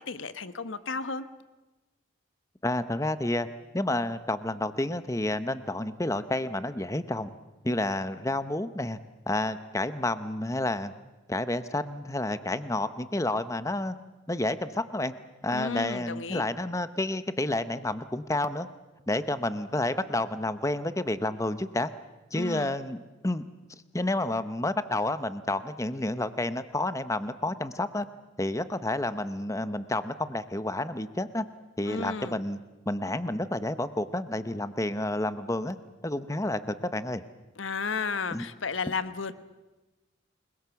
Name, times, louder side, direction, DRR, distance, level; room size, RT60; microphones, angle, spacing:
voice 1, 0.1-1.2 15.5-16.4 22.3-22.7 31.9-32.4 37.6-39.3, left 4 dB, 85° left, 12 dB, 1.1 m, -33 dB
voice 2, 2.6-3.5 3.7-7.3 7.6-9.0 9.3-10.9 11.3-13.9 14.3-15.1 15.4-18.7 19.1-21.9 22.3-23.4 23.9-28.1 28.4-31.4 31.8-32.6 32.9-35.8 36.0-37.2 38.3-38.4, left 1 dB, 15° left, 12 dB, 0.9 m, -30 dB
29.0 x 21.5 x 7.1 m, 1.1 s
head